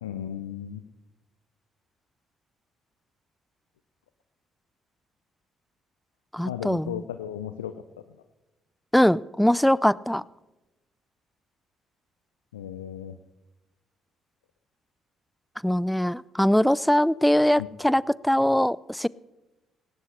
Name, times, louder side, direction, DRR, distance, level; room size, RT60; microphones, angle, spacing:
voice 1, 0.0-0.8 6.5-7.7 12.5-13.1 17.6-17.7, left 10 dB, 85° left, 10 dB, 0.5 m, -35 dB
voice 2, 6.3-7.0 8.9-10.2 15.6-19.1, equal, 5° left, 22 dB, 0.4 m, -22 dB
18.5 x 17.5 x 3.3 m, 1.1 s
figure-of-eight pair, 45°, 0 cm